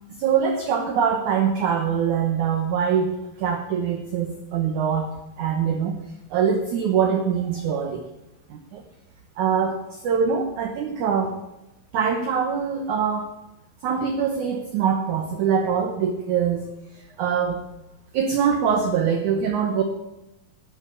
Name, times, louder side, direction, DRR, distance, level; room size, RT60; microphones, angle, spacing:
voice 1, 0.2-6.0 6.3-8.0 8.5-8.8 9.4-11.4 11.9-13.3 13.8-16.7 17.2-17.6 18.1-19.8, right 7 dB, 70° right, 5 dB, 1.9 m, -23 dB
12.5 x 7.6 x 8.4 m, 0.95 s
omnidirectional pair, 4.8 m